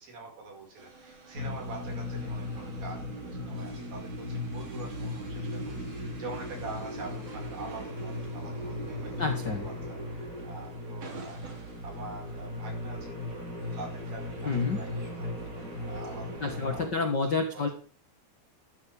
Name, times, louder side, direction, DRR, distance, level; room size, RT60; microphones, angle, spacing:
voice 1, 0.1-9.1 9.6-11.4 11.8-15.4 15.8-17.2 17.5-17.6, right 3 dB, 70° right, 1 dB, 7.2 m, -45 dB
sound 1, 0.8-16.8, right 3 dB, 40° right, 4.0 m, -52 dB
sound 2, 1.3-16.9, left 1 dB, 25° right, 8.0 m, -37 dB
voice 2, 9.2-9.7 14.4-14.8 16.4-17.7, left 4 dB, 50° left, 5 dB, 1.3 m, -29 dB
13.5 x 13.0 x 3.6 m, 0.42 s
omnidirectional pair, 4.3 m